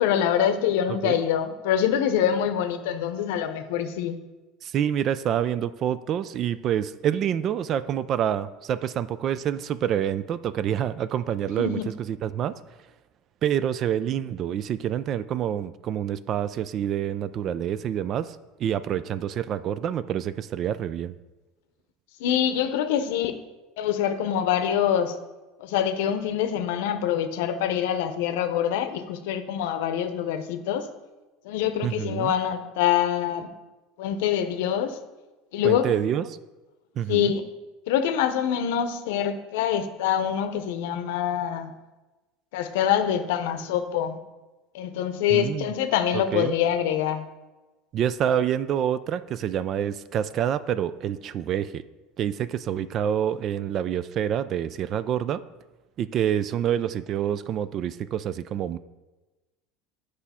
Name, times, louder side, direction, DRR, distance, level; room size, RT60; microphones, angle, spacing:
voice 1, 0.0-4.2 11.6-11.8 22.2-23.3 23.8-25.2 25.6-30.9 31.4-33.5 34.0-35.0 35.5-35.9 37.1-37.5 37.9-41.7 42.5-44.2 44.7-47.3, left 9 dB, 80° left, 9 dB, 0.7 m, -25 dB
voice 2, 4.6-11.8 12.1-12.5 13.4-21.1 31.8-32.3 35.6-36.4 37.0-37.3 45.3-45.7 46.1-46.5 47.9-51.8 52.2-55.4 56.0-58.8, right 9 dB, 45° right, 15 dB, 0.3 m, -27 dB
8.1 x 4.9 x 4.3 m, 1.1 s
supercardioid pair, 110°, 0 cm